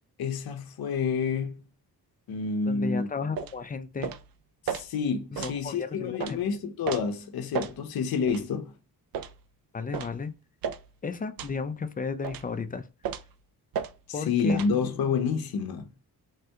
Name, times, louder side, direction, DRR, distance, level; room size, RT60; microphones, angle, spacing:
voice 1, 0.2-1.6 2.3-3.1 4.6-8.7 14.1-15.9, left 5 dB, 65° left, 0.6 m, -29 dB
voice 2, 2.7-4.1 5.3-6.4 9.7-10.3 11.0-12.9 14.1-14.6, left 5 dB, 25° left, 0.3 m, -34 dB
sound 1, 3.4-3.6 4.0-4.2 4.7-4.8 5.4-5.6 6.2-6.4 6.9-7.0 7.5-7.8 8.3-8.4 9.1-9.4 9.9-10.2 10.6-10.8 11.4-11.6 12.2-12.5 13.0-13.3 13.7-13.9 14.5-14.7, right 8 dB, 65° right, 0.5 m, -33 dB
3.5 x 2.2 x 2.8 m
cardioid pair, 75°, 39 cm